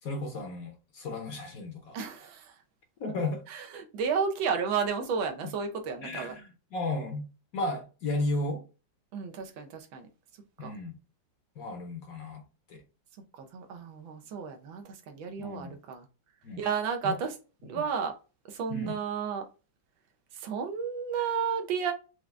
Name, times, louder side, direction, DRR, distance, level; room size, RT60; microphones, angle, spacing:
voice 1, 0.0-2.0 3.0-3.4 5.4-5.5 6.0-7.3 7.5-8.6 10.6-11.0 11.6-12.4 12.7-12.8 15.4-15.8 16.4-16.6 17.0-17.2 17.7-17.8 18.7-19.0, left 2 dB, 60° left, 1.0 m, -34 dB
voice 2, 1.9-2.6 3.5-6.3 9.1-10.1 10.6-10.7 13.4-16.0 16.6-17.3 17.6-18.1 18.5-19.4 20.3-21.9, right 6 dB, 85° right, 1.5 m, -32 dB
4.8 x 2.5 x 3.2 m
omnidirectional pair, 2.0 m